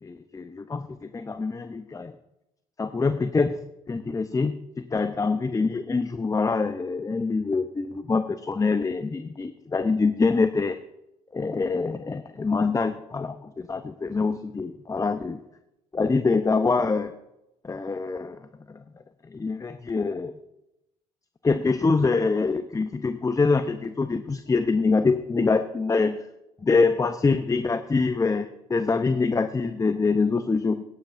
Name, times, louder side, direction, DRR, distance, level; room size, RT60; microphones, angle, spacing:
voice 1, 0.0-2.1 2.8-3.6 3.9-10.8 11.3-15.4 15.9-17.1 17.6-18.4 18.7-18.8 19.3-20.3 21.4-26.2 26.6-30.8, left 4 dB, 20° left, 10 dB, 0.7 m, -25 dB
18.5 x 10.0 x 2.6 m, 0.89 s
hypercardioid pair, 60°, 17 cm